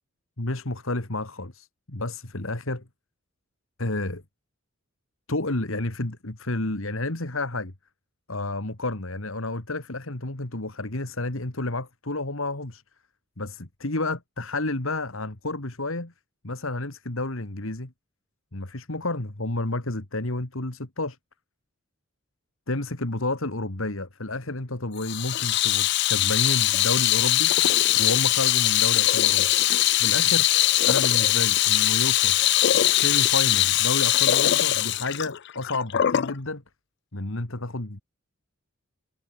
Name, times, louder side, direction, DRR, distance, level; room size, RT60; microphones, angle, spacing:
voice 1, 0.4-2.8 3.8-4.2 5.3-7.7 8.3-12.8 13.4-16.1 16.4-17.9 18.5-21.2 22.7-27.5 27.9-29.5 29.9-30.5 30.9-32.4 32.9-36.6 37.1-38.0, left 2 dB, 70° left, 2.3 m, -30 dB
Water tap faucet / Sink (filling or washing), 25.0-36.3, left 14 dB, 50° left, 0.3 m, -21 dB
head